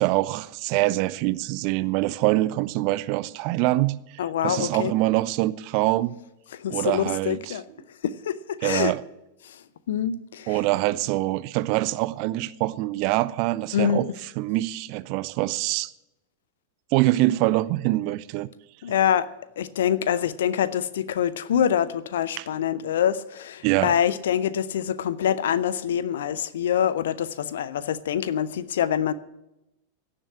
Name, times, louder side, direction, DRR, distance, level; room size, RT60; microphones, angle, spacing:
voice 1, 0.0-3.9 4.4-6.1 6.7-7.6 8.6-9.0 10.5-14.1 14.4-15.9 16.9-18.5 22.4-22.5 23.6-23.9, right 18 dB, 45° right, 0.5 m, -24 dB
voice 2, 4.2-4.9 6.5-7.6 8.0-8.9 9.4-9.6 9.9-10.6 13.7-14.1 18.8-19.3 19.6-29.1, left 9 dB, 60° left, 0.6 m, -25 dB
16.5 x 7.5 x 7.2 m
figure-of-eight pair, 90°, 0 cm